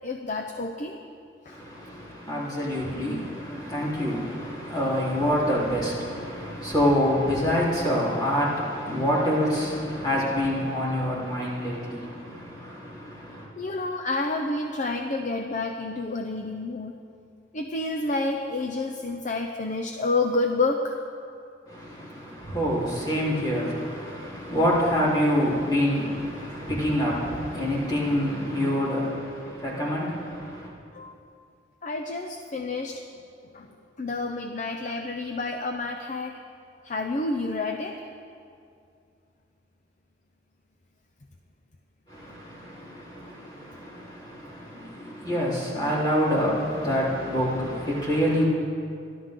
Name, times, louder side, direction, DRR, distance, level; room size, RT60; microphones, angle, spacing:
voice 1, 0.0-1.0 1.5-1.6 13.6-17.0 17.5-21.0 30.9-31.1 31.8-33.0 33.5-33.7 34.0-36.3 36.8-38.0, left 3 dB, 40° left, 3 dB, 0.7 m, -29 dB
voice 2, 1.5-13.5 21.7-30.7 42.1-48.4, equal, 25° left, -7 dB, 3.8 m, -27 dB
26.5 x 12.0 x 3.8 m, 2.4 s
head